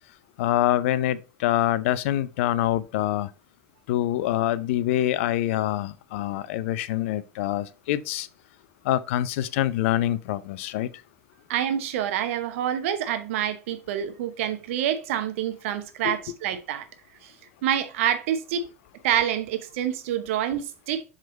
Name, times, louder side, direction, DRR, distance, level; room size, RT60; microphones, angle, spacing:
voice 1, 0.4-3.3 3.9-8.3 8.8-10.9 16.0-16.1, left 13 dB, 60° left, 0.5 m, -25 dB
voice 2, 11.5-16.9 17.2-17.3 17.6-18.7 19.0-21.0, right 10 dB, 60° right, 0.9 m, -27 dB
7.5 x 3.7 x 4.2 m
figure-of-eight pair, 75°, 8 cm